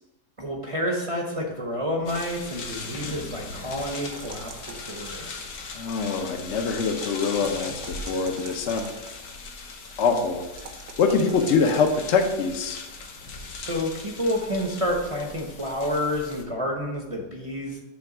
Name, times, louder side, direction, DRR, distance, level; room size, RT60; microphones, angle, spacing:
voice 1, 0.4-5.3 13.6-17.8, equal, 25° right, 0 dB, 0.7 m, -29 dB
sound 1, 2.1-16.4, left 4 dB, 70° left, 1.4 m, -39 dB
sound 2, 3.5-5.4 6.8-9.2 10.5-12.1, right 5 dB, 65° right, 1.3 m, -44 dB
voice 2, 5.7-8.9 10.0-10.4 11.0-12.8, left 5 dB, 55° left, 4 dB, 0.9 m, -24 dB
7.7 x 3.5 x 5.9 m, 1.1 s
omnidirectional pair, 1.7 m